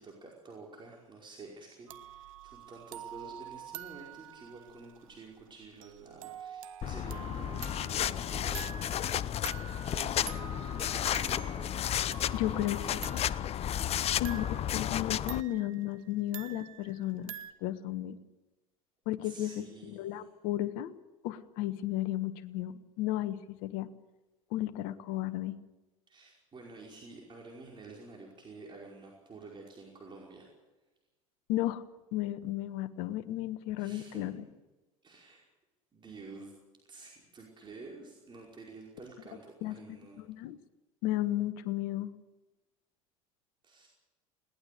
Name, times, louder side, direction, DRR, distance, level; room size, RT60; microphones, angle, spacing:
voice 1, 0.0-11.8 12.2-13.1 19.2-20.3 26.1-30.5 33.8-34.3 35.0-35.4 35.9-36.5 36.9-40.2 43.6-43.9, right 3 dB, 25° right, -1 dB, 5.1 m, -50 dB
sound 1, 1.9-17.5, right 11 dB, 70° right, 1.3 m, -48 dB
sound 2, 6.8-15.4, left 10 dB, 35° left, 0.8 m, -33 dB
voice 2, 12.3-12.8 13.0-13.2 14.2-17.3 17.6-18.2 19.0-19.5 19.8-21.0 21.2-23.9 24.5-25.6 31.5-31.8 32.1-34.4 39.6-39.8 40.2-40.6 41.0-42.1, left 14 dB, 60° left, 12 dB, 1.4 m, -34 dB
21.0 x 18.5 x 6.9 m, 1.1 s
figure-of-eight pair, 70°, 18 cm